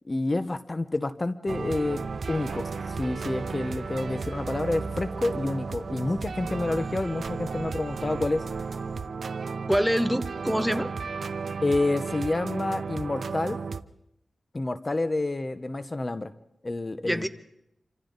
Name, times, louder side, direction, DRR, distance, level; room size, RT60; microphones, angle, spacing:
voice 1, 0.0-8.4 11.6-13.6 14.5-16.3 16.6-17.3, left 2 dB, 35° left, 11 dB, 0.9 m, -29 dB
sound 1, 1.5-9.1, right 2 dB, 30° right, 3.0 m, -43 dB
sound 2, 1.5-13.8, right 5 dB, 75° right, 0.7 m, -34 dB
voice 2, 9.7-10.9 17.0-17.3, equal, 5° right, 10 dB, 1.1 m, -25 dB
27.5 x 25.5 x 4.0 m, 0.80 s
wide cardioid pair, 75°, 0 cm